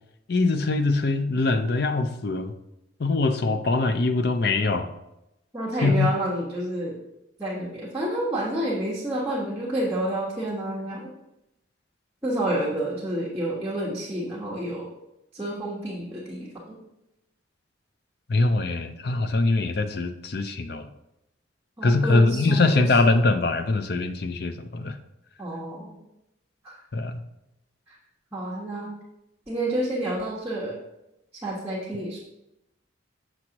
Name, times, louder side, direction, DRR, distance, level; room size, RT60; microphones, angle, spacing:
voice 1, 0.3-2.5 3.0-4.9 5.8-6.1 18.3-20.9 21.8-24.9 26.9-27.2, left 3 dB, 55° left, 8 dB, 0.5 m, -23 dB
voice 2, 5.5-7.0 7.4-11.1 12.2-14.9 15.3-16.8 21.8-23.0 25.4-26.0 26.6-26.7 27.9-28.0 28.3-28.9 29.5-30.8 31.4-32.2, right 1 dB, 10° right, -8 dB, 1.3 m, -29 dB
7.4 x 6.2 x 2.9 m, 0.87 s
head